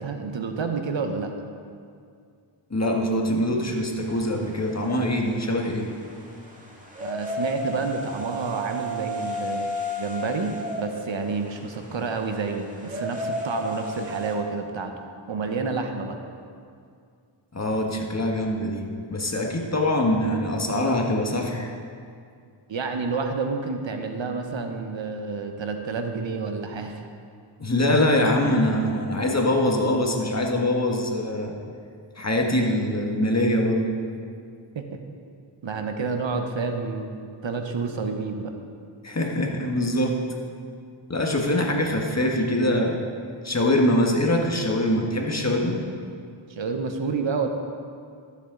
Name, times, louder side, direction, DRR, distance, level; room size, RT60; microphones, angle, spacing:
voice 1, 0.0-1.3 7.0-14.9 15.3-16.2 22.7-27.1 34.7-34.8 35.6-38.5 46.5-47.5, right 4 dB, 60° right, 5 dB, 1.0 m, -29 dB
voice 2, 2.7-5.9 17.5-18.9 19.1-21.7 27.6-31.5 32.2-34.0 39.0-40.2 41.1-43.0 43.4-45.8, left 1 dB, 30° left, 1 dB, 1.5 m, -23 dB
sound 1, 3.9-14.3, equal, 15° right, 2.0 m, -34 dB
13.5 x 7.3 x 3.8 m, 2.3 s
cardioid pair, 50°, 50 cm